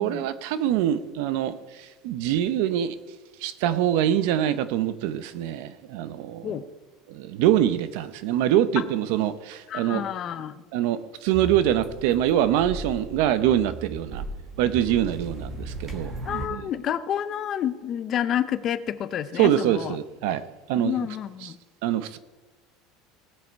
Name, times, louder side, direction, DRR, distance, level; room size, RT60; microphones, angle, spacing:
voice 1, 0.0-3.0 3.4-6.5 7.1-10.0 10.7-14.2 14.6-16.6 19.4-21.0 21.4-21.5 21.8-22.2, right 11 dB, 60° right, 0.8 m, -24 dB
voice 2, 9.7-10.5 16.3-20.0 20.8-21.6, left 10 dB, 30° left, 0.5 m, -29 dB
sound 1, 11.3-16.5, right 2 dB, 20° right, 1.4 m, -37 dB
18.5 x 7.7 x 4.6 m
cardioid pair, 175°, 0 cm